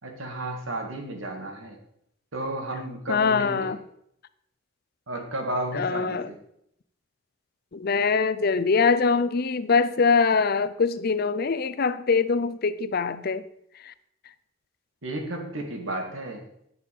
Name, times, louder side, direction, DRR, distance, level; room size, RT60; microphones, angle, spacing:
voice 1, 0.0-1.8 2.3-3.8 5.1-6.3 15.0-16.4, right 1 dB, 85° right, 2.1 m, -33 dB
voice 2, 3.1-3.8 5.7-6.3 7.7-13.5 13.8-13.9, left 5 dB, 50° left, 0.5 m, -23 dB
11.0 x 6.7 x 5.4 m
head